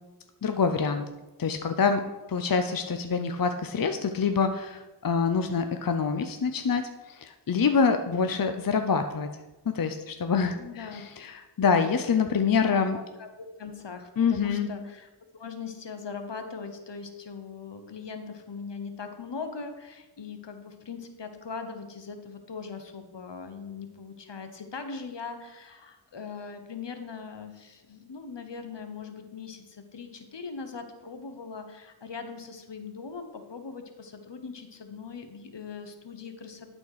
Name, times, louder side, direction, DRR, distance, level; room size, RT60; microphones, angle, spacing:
voice 1, 0.4-1.1 1.4-2.0 2.3-9.3 9.7-13.0 14.2-14.7, left 5 dB, 50° left, 7 dB, 0.6 m, -26 dB
voice 2, 10.6-11.1 12.5-36.7, left 5 dB, 70° left, 7 dB, 1.0 m, -40 dB
11.5 x 4.3 x 4.8 m, 1.1 s
wide cardioid pair, 40°, 44 cm